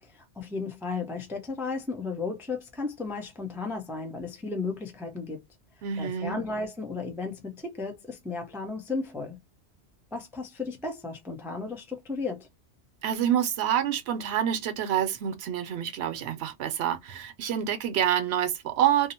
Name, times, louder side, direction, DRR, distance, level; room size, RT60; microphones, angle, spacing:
voice 1, 0.1-5.4 6.0-9.4 10.1-12.5, left 4 dB, 5° right, 0.4 m, -34 dB
voice 2, 5.8-6.4 13.0-19.1, right 10 dB, 70° right, 0.8 m, -27 dB
2.7 x 2.0 x 2.7 m
omnidirectional pair, 1.2 m